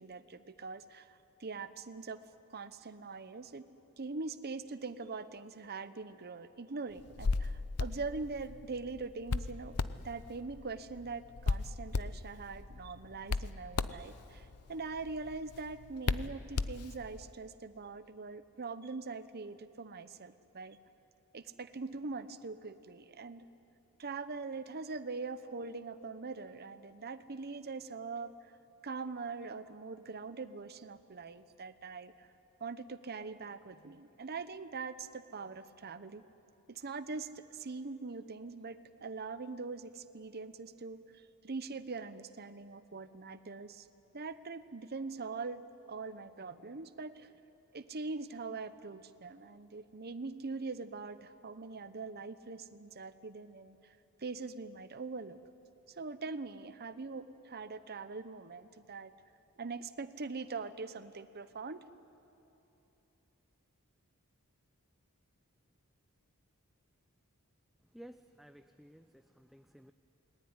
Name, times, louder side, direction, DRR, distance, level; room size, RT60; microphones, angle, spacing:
voice 1, 0.0-2.2 2.5-3.7 4.0-9.8 10.0-20.8 21.3-23.5 24.0-28.5 28.8-32.3 32.6-36.2 36.7-43.9 44.1-45.6 45.9-47.4 47.7-55.4 56.0-59.1 59.6-61.8, right 4 dB, 45° right, 12 dB, 0.9 m, -42 dB
Hands, 7.0-17.2, left 3 dB, 85° left, 0.7 m, -37 dB
voice 2, 67.9-69.9, equal, ahead, 8 dB, 0.5 m, -55 dB
28.0 x 20.0 x 9.7 m, 2.9 s
head